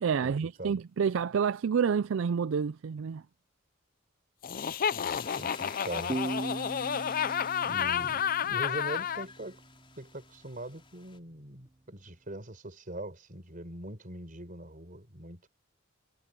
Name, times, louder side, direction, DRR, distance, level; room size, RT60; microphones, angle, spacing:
voice 1, 0.0-3.2, right 6 dB, 65° right, 0.4 m, -28 dB
Laughter, 4.4-9.3, left 8 dB, 45° left, 0.4 m, -31 dB
sound 1, 4.5-11.2, left 5 dB, 25° left, 4.9 m, -51 dB
voice 2, 5.3-6.4 7.6-9.6 10.0-15.5, right 1 dB, 40° right, 5.0 m, -42 dB
sound 2, 6.1-9.5, right 2 dB, 20° right, 0.8 m, -39 dB
head